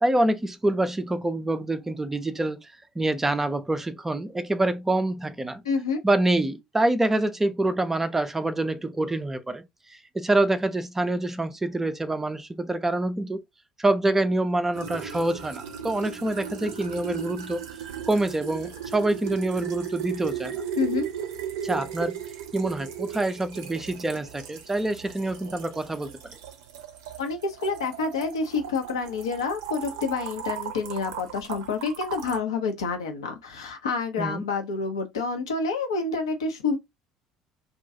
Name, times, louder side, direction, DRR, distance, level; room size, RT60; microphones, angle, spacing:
voice 1, 0.0-2.7 3.0-5.6 6.0-9.6 9.9-13.4 13.8-17.6 18.1-20.5 21.6-22.2 22.5-26.1 34.2-34.4, right 2 dB, 15° right, 0.4 m, -26 dB
voice 2, 5.6-6.0 20.8-21.1 27.2-36.8, left 4 dB, 70° left, 0.6 m, -28 dB
sound 1, 14.7-32.4, right 8 dB, 65° right, 0.5 m, -36 dB
2.3 x 2.2 x 2.7 m
figure-of-eight pair, 60°, 3 cm